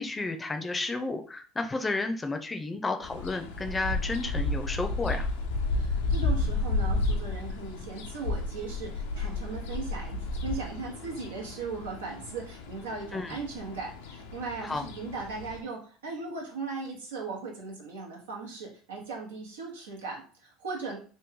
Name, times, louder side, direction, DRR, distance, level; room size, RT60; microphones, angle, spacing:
voice 1, 0.0-5.3 13.1-13.4 14.6-14.9, left 3 dB, 20° left, 7 dB, 0.6 m, -32 dB
sound 1, 3.0-15.6, left 2 dB, 80° left, 0.5 m, -32 dB
voice 2, 5.7-21.0, right 4 dB, 90° right, -1 dB, 0.9 m, -38 dB
3.1 x 2.2 x 3.6 m, 0.40 s
hypercardioid pair, 80°, 0 cm